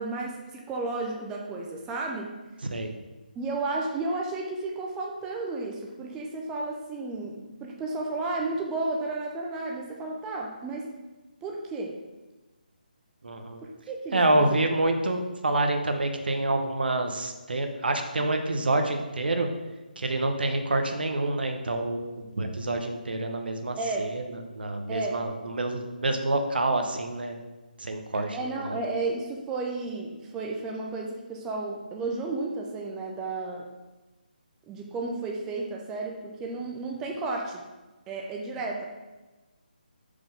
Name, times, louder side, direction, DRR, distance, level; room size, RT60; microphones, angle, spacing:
voice 1, 0.0-2.3 3.4-10.9 11.4-12.0 13.6-14.6 23.8-24.2 24.9-25.2 28.3-33.7 34.7-37.6 38.1-38.8, right 3 dB, 10° right, 0 dB, 0.4 m, -32 dB
voice 2, 13.2-13.6 14.1-19.5 20.0-24.3 24.5-27.4 27.8-28.8, right 2 dB, 80° right, 5 dB, 0.8 m, -27 dB
4.9 x 3.7 x 5.2 m, 1.2 s
hypercardioid pair, 165°, 5 cm